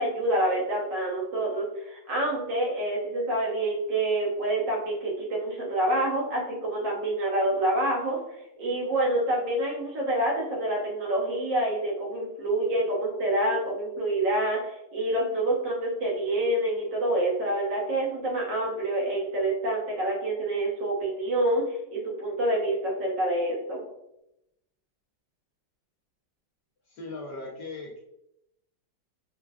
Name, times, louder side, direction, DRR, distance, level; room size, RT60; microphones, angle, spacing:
voice 1, 0.0-8.2 8.6-23.8, right 1 dB, 65° right, -3 dB, 1.4 m, -27 dB
voice 2, 26.9-28.0, left 2 dB, 65° left, -4 dB, 1.1 m, -38 dB
5.6 x 2.3 x 2.3 m, 0.84 s
omnidirectional pair, 2.4 m